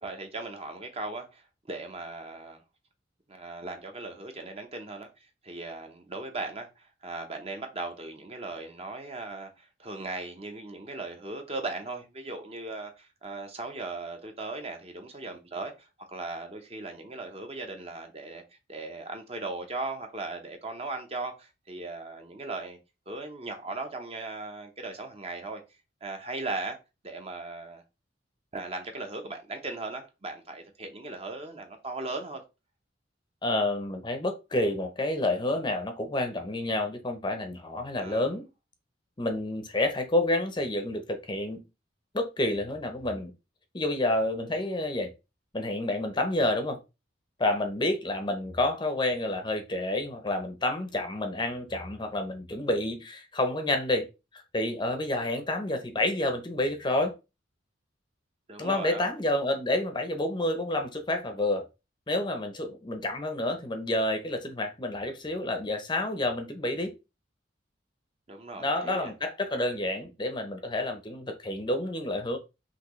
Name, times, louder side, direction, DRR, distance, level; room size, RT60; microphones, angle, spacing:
voice 1, 0.0-2.6 3.3-5.1 5.4-22.8 23.1-25.6 26.0-26.8 27.0-27.8 28.5-32.4 38.0-38.3 58.5-59.1 68.3-69.1, right 3 dB, 30° right, 0.8 m, -38 dB
voice 2, 33.4-38.5 39.2-41.6 42.1-43.3 43.7-45.1 45.5-46.8 47.4-57.1 58.6-61.6 62.1-66.9 68.6-72.4, left 1 dB, 25° left, 0.7 m, -29 dB
5.7 x 2.8 x 3.1 m
head